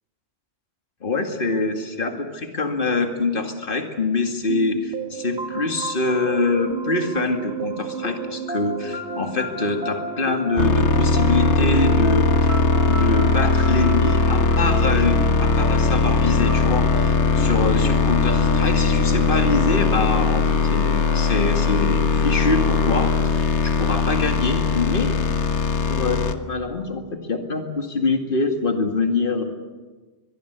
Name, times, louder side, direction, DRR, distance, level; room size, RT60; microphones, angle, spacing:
voice 1, 1.0-12.6 12.8-25.1 25.9-29.4, left 3 dB, 45° left, 5 dB, 2.4 m, -25 dB
sound 1, 4.5-24.0, right 2 dB, 60° right, 2.2 m, -33 dB
sound 2, 10.6-26.3, left 4 dB, 65° left, 1.6 m, -19 dB
23.0 x 22.5 x 8.2 m, 1.3 s
omnidirectional pair, 1.3 m